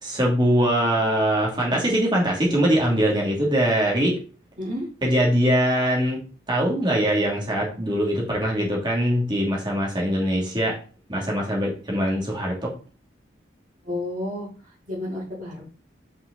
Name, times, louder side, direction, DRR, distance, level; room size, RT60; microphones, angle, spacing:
voice 1, 0.0-4.2 5.0-6.2 6.5-10.8 11.1-12.7, equal, 25° right, -3 dB, 2.7 m, -22 dB
voice 2, 13.8-15.6, left 1 dB, 45° right, -5 dB, 3.6 m, -31 dB
5.8 x 5.5 x 4.1 m, 0.37 s
head